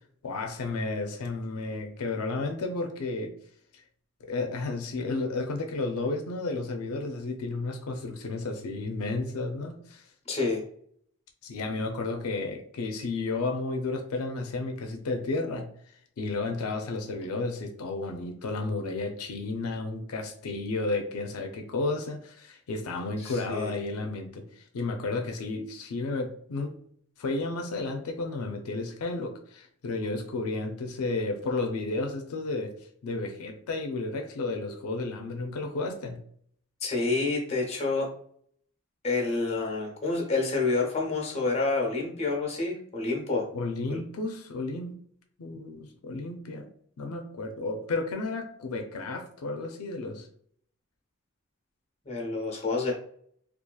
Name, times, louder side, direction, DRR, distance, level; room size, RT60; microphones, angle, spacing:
voice 1, 0.2-3.3 4.3-10.1 11.4-15.7 16.2-26.8 27.2-32.7 33.0-36.2 43.5-45.0 45.4-46.7 47.0-50.3, left 3 dB, 90° left, 4 dB, 0.4 m, -32 dB
voice 2, 10.3-10.6 23.2-23.7 36.8-38.1 39.0-43.5 43.9-44.0 52.1-52.9, left 3 dB, 30° left, 0 dB, 0.7 m, -28 dB
2.7 x 2.4 x 2.2 m, 0.62 s
head